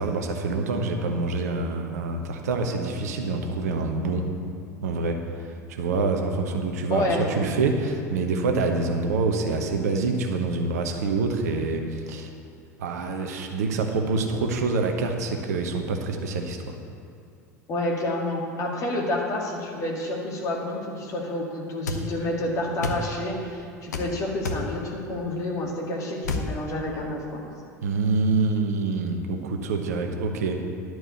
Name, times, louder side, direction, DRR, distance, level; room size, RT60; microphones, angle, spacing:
voice 1, 0.0-4.3 4.8-5.2 5.7-12.3 12.8-16.8 27.8-30.6, right 3 dB, 65° right, 4 dB, 0.9 m, -26 dB
voice 2, 6.9-7.2 17.7-27.4, left 1 dB, 35° left, -1 dB, 2.0 m, -29 dB
sound 1, 21.9-22.0 22.8-23.0 23.9-24.1 24.4-24.7 26.2-26.5, left 3 dB, 70° left, 0.8 m, -28 dB
11.0 x 4.7 x 8.1 m, 2.4 s
figure-of-eight pair, 75°, 9 cm